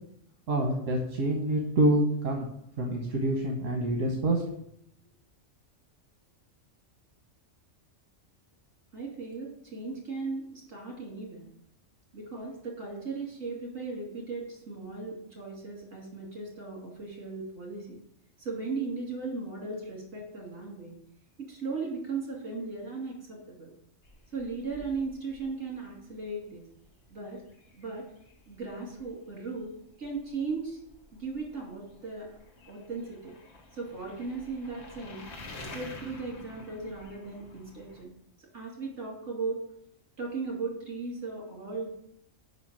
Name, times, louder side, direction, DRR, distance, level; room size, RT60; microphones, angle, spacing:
voice 1, 0.5-2.5 2.8-4.4, right 1 dB, 85° right, 0 dB, 1.4 m, -26 dB
voice 2, 8.9-11.5 12.1-18.0 18.4-20.9 21.4-23.7 24.3-26.6 27.1-27.4 27.8-28.0 28.5-29.7 30.0-30.8 31.1-32.3 32.7-33.3 33.7-35.2 35.7-38.1 38.5-39.6 40.2-41.9, right 4 dB, 65° right, -3 dB, 2.9 m, -37 dB
sound 1, 24.0-38.0, left 2 dB, 60° left, 1.5 m, -50 dB
5.4 x 4.9 x 6.1 m, 0.73 s
omnidirectional pair, 1.3 m